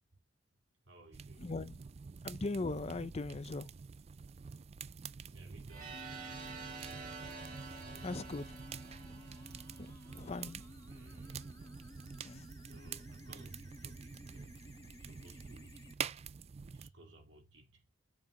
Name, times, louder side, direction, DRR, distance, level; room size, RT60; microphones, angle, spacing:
voice 1, 0.9-1.5 5.3-6.6 7.8-8.6 10.9-11.4 12.3-15.9 16.6-17.9, right 2 dB, 65° right, 2.5 m, -59 dB
sound 1, 1.1-16.9, right 6 dB, 35° right, 0.4 m, -48 dB
voice 2, 1.4-1.8 2.2-3.7 8.0-8.5 10.1-10.6 12.2-12.4, left 3 dB, 35° left, 0.5 m, -39 dB
sound 2, 5.7-10.5, right 5 dB, 50° right, 3.2 m, -49 dB
sound 3, 5.9-15.9, left 1 dB, 20° left, 1.2 m, -55 dB
7.5 x 4.7 x 3.8 m
head